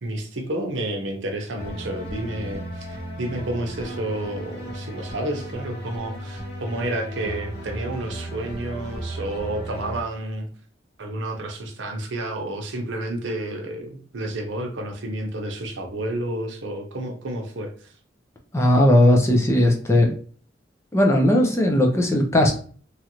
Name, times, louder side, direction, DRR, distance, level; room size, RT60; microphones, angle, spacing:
voice 1, 0.0-10.5 11.0-17.9, right 1 dB, 80° right, 3 dB, 0.7 m, -30 dB
sound 1, 1.6-10.0, right 1 dB, 55° left, 1.3 m, -35 dB
voice 2, 18.5-20.1 20.9-22.5, left 1 dB, 15° left, 1 dB, 0.5 m, -17 dB
3.0 x 2.5 x 2.9 m, 0.43 s
head